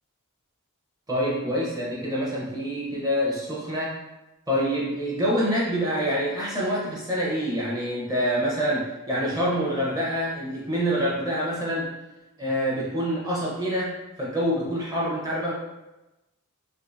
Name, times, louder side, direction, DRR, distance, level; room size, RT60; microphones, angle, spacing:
voice 1, 1.1-3.9 4.5-11.9 12.4-15.5, equal, 15° right, -5 dB, 0.7 m, -26 dB
3.5 x 2.7 x 2.6 m, 1.0 s
head